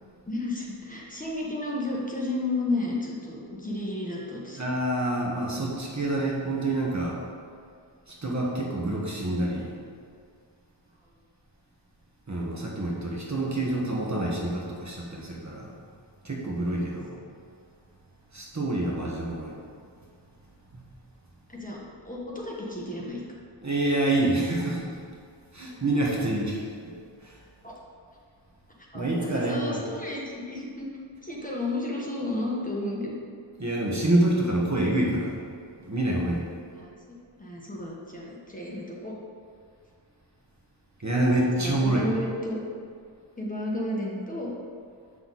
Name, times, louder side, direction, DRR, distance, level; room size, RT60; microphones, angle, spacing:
voice 1, 0.3-4.6 21.5-21.8 22.0-23.2 27.6-27.7 28.9-30.9 31.2-33.1 36.7-36.9 37.4-39.1 41.5-42.6 43.4-44.5, left 1 dB, 15° left, -4 dB, 1.4 m, -32 dB
voice 2, 4.6-7.2 8.1-9.7 12.3-15.8 16.2-17.2 18.3-19.6 23.6-24.9 25.5-26.9 27.2-27.4 28.9-29.8 33.6-35.4 35.9-36.4 41.0-42.0, right 1 dB, 35° right, -3 dB, 1.3 m, -27 dB
7.9 x 6.2 x 4.1 m, 2.2 s
wide cardioid pair, 90°, 46 cm